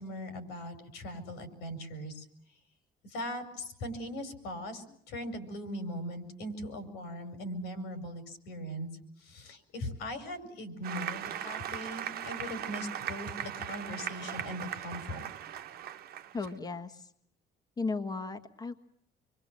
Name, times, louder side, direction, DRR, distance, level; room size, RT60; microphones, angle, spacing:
voice 1, 0.0-2.2 3.0-8.9 9.2-15.3, equal, 90° left, 8 dB, 5.2 m, -40 dB
Applause, 10.8-16.5, right 10 dB, 65° right, 1.2 m, -39 dB
voice 2, 16.3-17.1 17.8-18.8, left 3 dB, 25° left, 5 dB, 1.6 m, -35 dB
26.5 x 23.0 x 7.6 m, 0.66 s
cardioid pair, 110°, 17 cm